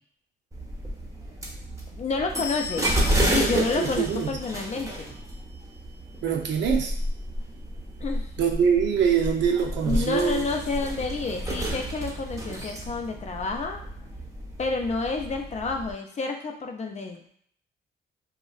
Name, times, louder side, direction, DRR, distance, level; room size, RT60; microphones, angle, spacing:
sound 1, 0.5-15.9, right 1 dB, 15° right, 0.7 m, -31 dB
voice 1, 1.9-3.0 3.3-5.1 8.0-8.3 9.9-13.8 14.6-17.3, left 4 dB, 35° left, 3 dB, 0.4 m, -29 dB
voice 2, 3.8-4.3 6.2-6.9 8.4-10.4, right 7 dB, 65° right, 2 dB, 0.6 m, -24 dB
2.8 x 2.3 x 2.3 m, 0.62 s
cardioid pair, 90°, 20 cm